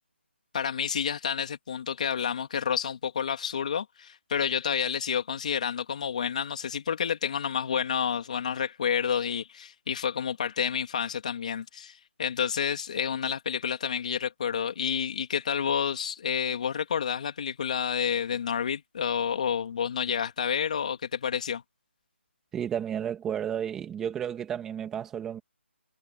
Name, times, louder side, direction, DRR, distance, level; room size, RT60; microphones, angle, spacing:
voice 1, 0.5-21.6, left 7 dB, 35° left, 2.8 m, -29 dB
voice 2, 22.5-25.4, right 9 dB, 5° right, 2.6 m, -32 dB
hypercardioid pair, 175°, 7 cm